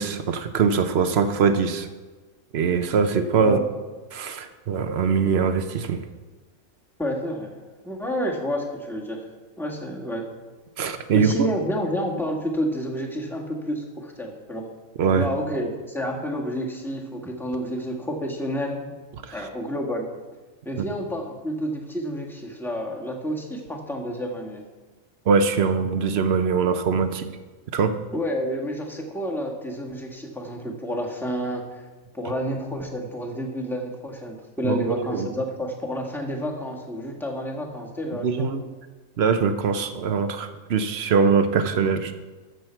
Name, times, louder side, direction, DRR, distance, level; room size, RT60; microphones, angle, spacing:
voice 1, 0.0-1.9 2.5-3.6 4.1-6.0 10.8-11.5 15.0-15.3 19.2-19.5 20.8-20.9 25.3-27.3 27.7-28.0 34.6-35.3 38.2-38.6 39.2-42.1, right 5 dB, 55° right, 10 dB, 0.9 m, -22 dB
voice 2, 7.0-7.6 7.8-9.2 9.6-10.2 11.1-14.7 15.2-18.9 19.3-20.1 20.6-24.6 28.1-31.8 32.1-38.5, equal, ahead, -1 dB, 1.4 m, -29 dB
13.0 x 7.3 x 4.5 m, 1.3 s
omnidirectional pair, 1.5 m